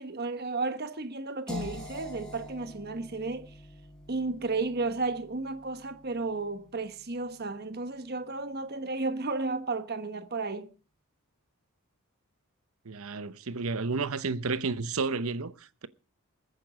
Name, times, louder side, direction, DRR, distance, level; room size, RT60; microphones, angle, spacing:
voice 1, 0.0-3.5 4.1-10.7, right 3 dB, 45° right, 1.3 m, -33 dB
sound 1, 1.5-7.4, left 2 dB, 5° left, 4.8 m, -45 dB
voice 2, 12.8-15.9, right 4 dB, 70° right, 0.8 m, -31 dB
21.0 x 9.1 x 5.1 m
head